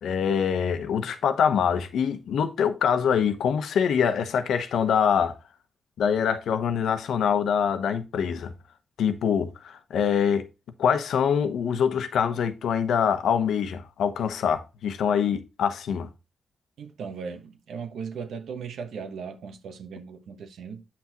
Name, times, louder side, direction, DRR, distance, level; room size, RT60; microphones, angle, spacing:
voice 1, 0.0-5.4 6.0-8.5 9.0-10.5 10.8-16.1, left 7 dB, 90° left, 1.0 m, -24 dB
voice 2, 16.8-20.8, right 6 dB, 85° right, 1.2 m, -37 dB
8.7 x 6.0 x 3.0 m
cardioid pair, 110°, 0 cm